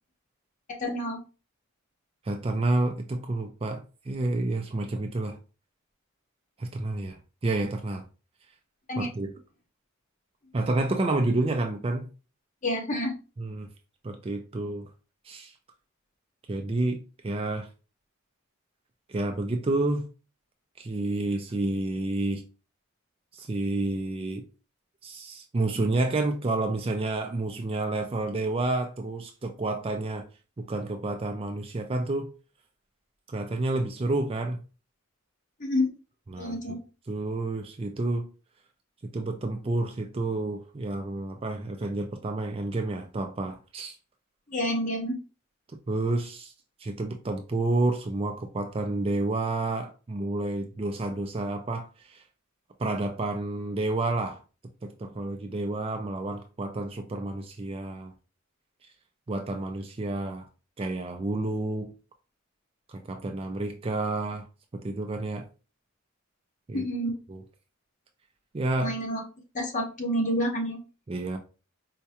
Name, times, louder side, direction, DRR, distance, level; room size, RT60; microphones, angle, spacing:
voice 1, 0.8-1.2 8.9-9.1 12.6-13.2 35.6-35.9 36.4-36.8 44.5-45.2 66.7-67.2 68.8-69.2 69.5-70.8, equal, 35° left, 0.9 m, -28 dB
voice 2, 2.2-5.4 6.6-8.0 9.0-9.3 10.5-12.1 13.4-13.7 14.0-14.9 15.2-15.5 16.5-17.7 19.1-20.1 20.8-22.4 23.3-24.4 25.0-30.2 30.6-32.3 33.3-34.6 36.3-36.8 37.1-38.2 39.0-43.9 45.9-46.5 46.8-52.2 52.8-54.4 54.8-58.1 59.3-60.5 60.8-61.9 62.9-64.5 64.7-65.5 66.7-66.8 67.3-67.4 68.5-69.0 71.1-71.4, right 2 dB, 25° right, 0.3 m, -29 dB
4.6 x 2.2 x 2.8 m
head